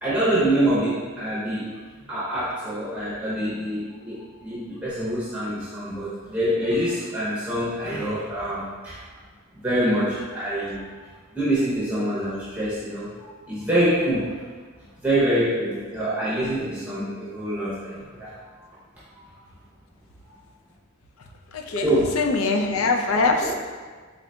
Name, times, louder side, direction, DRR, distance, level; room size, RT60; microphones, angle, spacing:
voice 1, 0.0-1.8 2.1-9.0 9.6-10.9 11.3-13.1 13.5-14.3 15.0-18.3 21.8-22.1 23.4-23.5, right 1 dB, 10° right, -11 dB, 0.7 m, -25 dB
voice 2, 21.5-21.9 22.1-23.5, left 3 dB, 85° left, 2 dB, 0.4 m, -22 dB
3.8 x 3.6 x 2.2 m, 1.5 s
head